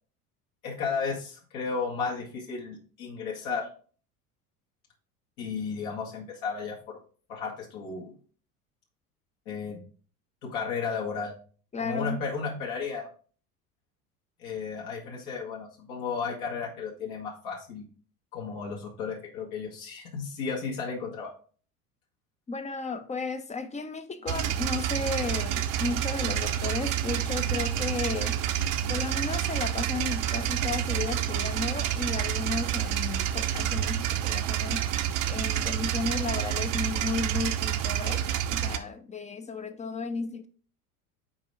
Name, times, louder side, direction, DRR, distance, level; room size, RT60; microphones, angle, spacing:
voice 1, 0.6-3.7 5.4-7.0 7.3-8.1 9.5-9.8 10.4-11.3 11.8-13.1 14.4-17.9 18.3-21.3, left 5 dB, 60° left, 2.0 m, -34 dB
voice 2, 11.7-12.2 22.5-28.4 28.9-34.8 35.3-38.2 38.5-40.5, left 4 dB, 15° left, 0.7 m, -34 dB
sound 1, 24.3-38.8, right 11 dB, 45° right, 0.8 m, -28 dB
6.1 x 4.4 x 4.9 m
hypercardioid pair, 75°, 45 cm